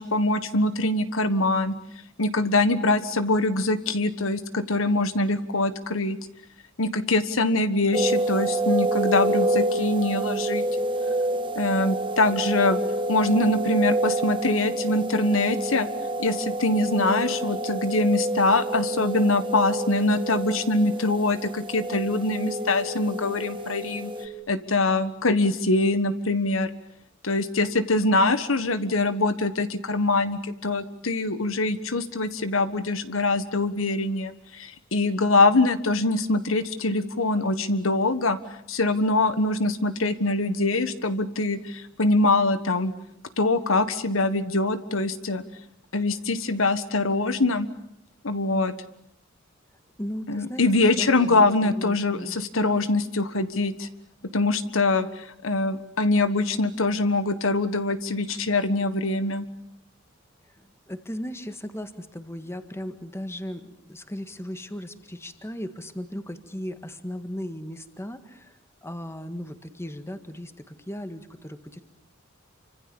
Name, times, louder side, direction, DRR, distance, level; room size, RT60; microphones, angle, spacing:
voice 1, 0.0-1.7 2.2-6.2 6.8-10.6 11.5-12.8 13.1-15.9 16.2-26.7 27.2-38.4 38.7-42.9 43.4-45.4 45.9-47.7 48.2-48.7 50.3-53.9 54.3-59.5, left 2 dB, 75° left, 11 dB, 1.5 m, -23 dB
sound 1, 7.9-24.3, right 2 dB, 25° right, 1.6 m, -28 dB
voice 2, 50.0-50.6 51.0-52.4 60.6-71.8, equal, 15° left, 9 dB, 1.8 m, -37 dB
29.0 x 25.5 x 7.1 m, 0.71 s
head